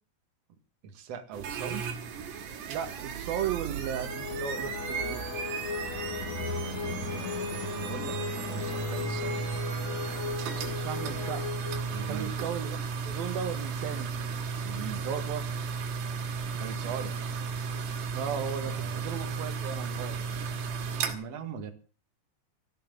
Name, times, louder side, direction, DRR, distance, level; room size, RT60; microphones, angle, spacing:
voice 1, 0.8-1.9 6.6-7.2 7.5-9.4 11.9-12.4 14.6-15.1 16.5-17.3 18.6-19.2 21.0-21.7, right 7 dB, 50° right, 6 dB, 2.4 m, -41 dB
sound 1, 1.3-21.1, right 5 dB, 85° right, 4.1 m, -34 dB
voice 2, 2.7-5.3 10.6-11.4 12.1-12.8 13.1-14.1 15.0-15.4 18.1-20.2, right 8 dB, 70° right, 4 dB, 3.0 m, -35 dB
sound 2, 3.9-12.4, left 6 dB, 50° left, 2.5 m, -37 dB
16.0 x 6.7 x 9.5 m, 0.39 s
omnidirectional pair, 4.8 m